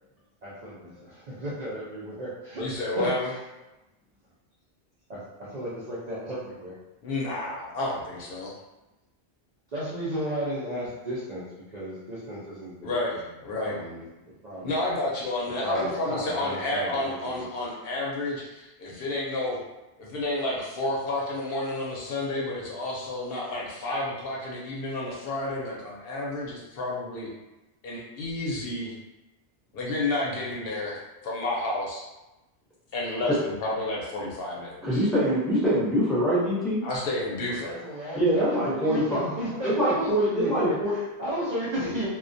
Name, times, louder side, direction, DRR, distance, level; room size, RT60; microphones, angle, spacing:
voice 1, 0.4-0.9 1.4-3.1 5.1-5.2 5.5-6.7 9.7-11.4 11.7-13.0 13.5-14.0 14.4-14.7 15.6-17.6 37.5-42.1, right 1 dB, 50° right, -9 dB, 0.5 m, -33 dB
voice 2, 2.6-3.3 7.0-8.5 12.8-13.8 14.6-19.6 20.0-27.3 27.8-28.9 29.7-32.0 32.9-35.0 36.8-37.8 41.9-42.0, left 2 dB, 65° left, -4 dB, 0.7 m, -30 dB
voice 3, 34.8-36.8 38.1-39.2 39.6-40.9, equal, ahead, -9 dB, 0.7 m, -24 dB
2.2 x 2.1 x 2.5 m, 1.0 s
omnidirectional pair, 1.1 m